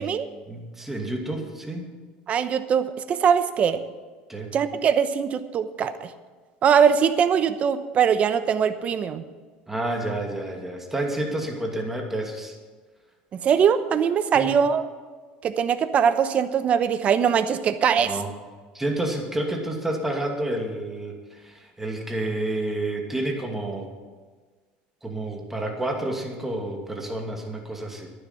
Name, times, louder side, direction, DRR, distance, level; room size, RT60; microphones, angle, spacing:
voice 1, 0.5-1.9 4.3-4.6 9.7-12.6 14.3-14.5 18.1-18.3 18.7-23.9 25.0-28.1, right 1 dB, 10° right, 2 dB, 2.4 m, -29 dB
voice 2, 2.3-3.8 4.5-6.1 6.6-9.2 13.3-14.9 15.4-18.2, right 7 dB, 40° right, 12 dB, 0.9 m, -21 dB
11.5 x 10.0 x 7.4 m, 1.4 s
supercardioid pair, 120°, 4 cm